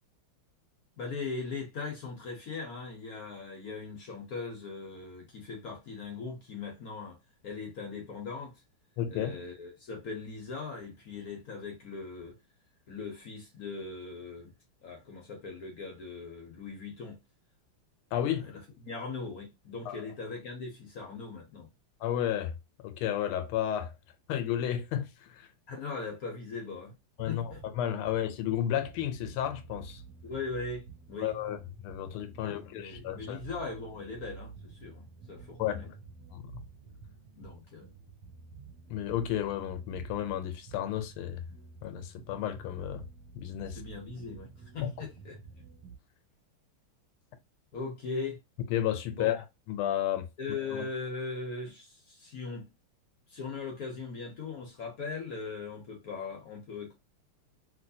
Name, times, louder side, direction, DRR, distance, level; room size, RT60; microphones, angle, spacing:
voice 1, 1.0-7.2 7.4-8.6 9.1-12.3 12.9-14.5 14.8-17.2 18.4-21.7 25.7-27.0 27.3-27.6 30.2-31.3 32.3-35.9 37.3-37.9 43.7-45.6 47.7-48.4 49.2-49.4 50.4-52.7 53.3-56.9, left 4 dB, 60° left, 1.0 m, -40 dB
voice 2, 9.0-9.4 18.1-18.6 19.9-20.0 22.0-22.5 22.8-23.9 24.3-25.5 27.2-30.0 31.2-33.4 35.6-36.0 36.3-36.6 38.9-41.4 41.8-43.0 43.3-43.8 44.8-45.1 48.7-50.3 50.7-50.9, left 11 dB, 85° left, 1.5 m, -32 dB
sound 1, 27.2-46.0, right 5 dB, 65° right, 1.3 m, -50 dB
3.1 x 3.0 x 2.6 m
omnidirectional pair, 2.3 m